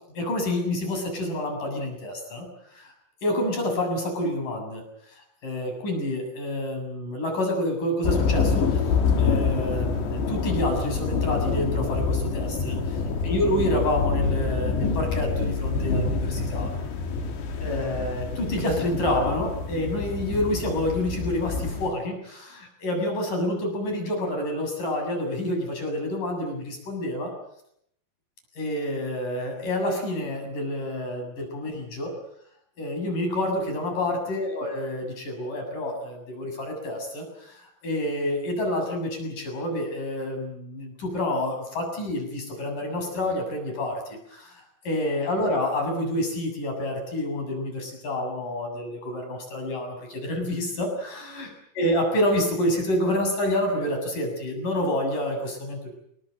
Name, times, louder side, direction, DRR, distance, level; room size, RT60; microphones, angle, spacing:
voice 1, 0.1-2.5 2.7-2.9 3.2-4.9 5.4-8.8 9.2-16.7 17.6-27.3 28.6-32.1 32.8-51.5 51.8-55.9, left 1 dB, 50° left, 4 dB, 9.0 m, -28 dB
sound 1, 8.0-21.9, left 5 dB, 80° left, 5.4 m, -26 dB
28.5 x 23.0 x 7.9 m, 0.73 s
omnidirectional pair, 4.9 m